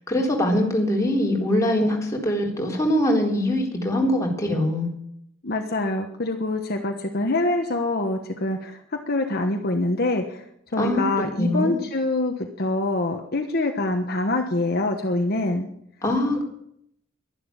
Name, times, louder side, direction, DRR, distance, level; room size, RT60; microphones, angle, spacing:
voice 1, 0.0-4.9 10.8-11.1 11.4-11.8 16.0-16.4, left 1 dB, 15° left, -1 dB, 3.9 m, -22 dB
voice 2, 5.4-10.4 10.7-15.7, left 2 dB, 50° left, 4 dB, 1.3 m, -25 dB
12.0 x 11.5 x 8.9 m, 0.72 s
head